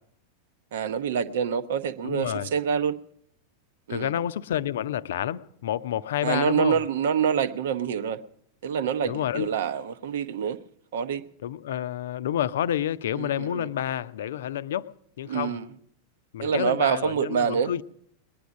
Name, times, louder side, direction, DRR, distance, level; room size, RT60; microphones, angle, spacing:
voice 1, 0.7-3.0 3.9-4.1 6.2-8.2 8.6-10.6 10.9-11.2 13.1-13.7 15.3-15.7 16.4-17.7, right 7 dB, 60° right, 0.8 m, -26 dB
voice 2, 2.0-2.5 3.9-6.8 9.1-9.5 11.4-14.9 15.2-15.6 16.3-17.8, left 11 dB, 60° left, 0.5 m, -29 dB
20.5 x 10.5 x 6.3 m
figure-of-eight pair, 90°, 0 cm